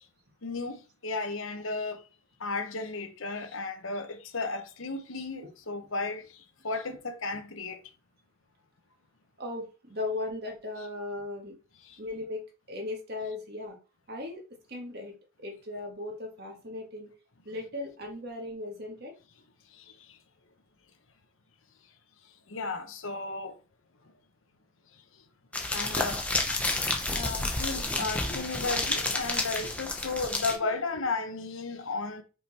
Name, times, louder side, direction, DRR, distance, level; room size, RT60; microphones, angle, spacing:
voice 1, 0.4-2.0 2.4-6.3 6.6-7.8 19.8-19.9 22.5-23.6 25.7-26.4 27.1-32.2, left 3 dB, 70° left, 1.0 m, -34 dB
voice 2, 9.4-11.6 12.0-12.4 12.7-13.8 14.1-14.4 14.7-15.1 15.4-17.1 17.5-19.1 29.0-29.1, left 2 dB, 45° right, 1.9 m, -37 dB
sound 1, 25.5-30.6, left 2 dB, 5° left, 0.8 m, -30 dB
5.6 x 4.9 x 4.3 m
head